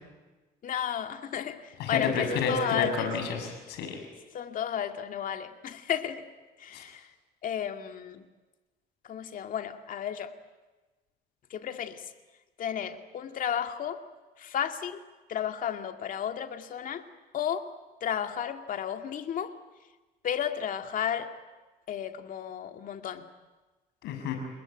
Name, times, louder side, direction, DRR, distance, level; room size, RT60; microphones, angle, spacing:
voice 1, 0.6-3.1 4.3-6.2 6.6-7.1 7.4-8.2 9.0-10.3 11.5-12.1 12.6-14.0 14.4-15.0 15.3-17.1 17.3-17.7 18.0-19.5 20.2-21.3 21.9-23.3, left 9 dB, 55° left, 7 dB, 2.2 m, -33 dB
voice 2, 1.8-3.9 6.7-6.8 24.0-24.4, left 5 dB, 85° left, 4 dB, 6.7 m, -30 dB
29.5 x 20.0 x 9.2 m, 1.2 s
cardioid pair, 110°, 17 cm